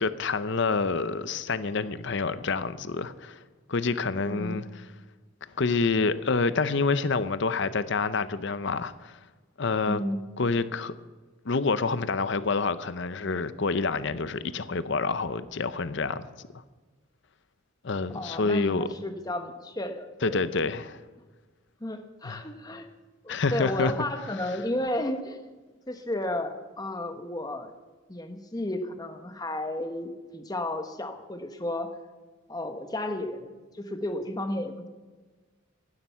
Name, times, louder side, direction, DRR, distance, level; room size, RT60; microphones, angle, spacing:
voice 1, 0.0-3.4 3.7-4.6 5.6-9.2 9.6-10.0 10.4-10.9 11.5-16.3 17.8-18.9 20.2-21.0 22.2-22.4 23.3-23.9, left 4 dB, 55° left, 14 dB, 0.7 m, -27 dB
voice 2, 4.2-4.6 9.9-10.2 18.1-20.4 21.8-22.9 23.2-25.4 25.9-27.7 28.1-31.9 32.5-34.9, left 1 dB, 20° left, 7 dB, 1.1 m, -33 dB
16.0 x 11.5 x 5.7 m, 1.3 s
head